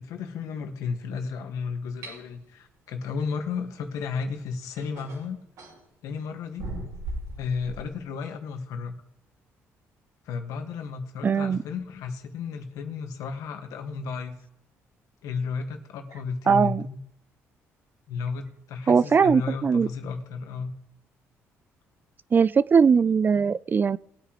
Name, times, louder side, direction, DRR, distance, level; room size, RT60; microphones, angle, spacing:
voice 1, 0.0-5.4 6.0-6.7 7.4-9.0 10.2-14.4 15.2-17.0 18.1-20.7, left 5 dB, 80° left, 1.8 m, -33 dB
sound 1, 2.0-2.2 4.0-4.1 4.8-5.8 6.6-7.9, right 1 dB, 75° right, 6.1 m, -37 dB
voice 2, 11.2-11.6 16.5-16.8 18.9-19.9 22.3-24.0, right 6 dB, 35° right, 0.3 m, -20 dB
20.5 x 8.9 x 3.1 m
supercardioid pair, 80°, 6 cm